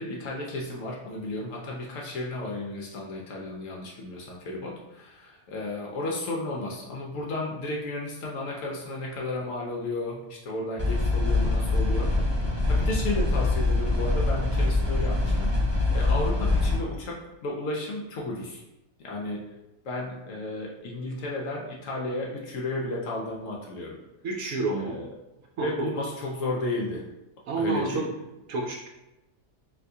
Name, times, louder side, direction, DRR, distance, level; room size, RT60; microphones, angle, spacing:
voice 1, 0.0-12.3 12.7-15.5 15.9-18.6 19.0-19.5 19.8-24.0 24.7-25.1 25.6-27.1 27.6-28.1, left 2 dB, 65° left, -2 dB, 0.9 m, -33 dB
sound 1, 10.8-16.8, left 2 dB, 15° left, 0.5 m, -24 dB
voice 2, 24.2-25.0 25.6-25.9 27.5-28.1 28.5-28.9, right 3 dB, 70° right, -1 dB, 0.8 m, -29 dB
3.4 x 2.7 x 2.6 m, 0.95 s
omnidirectional pair, 1.6 m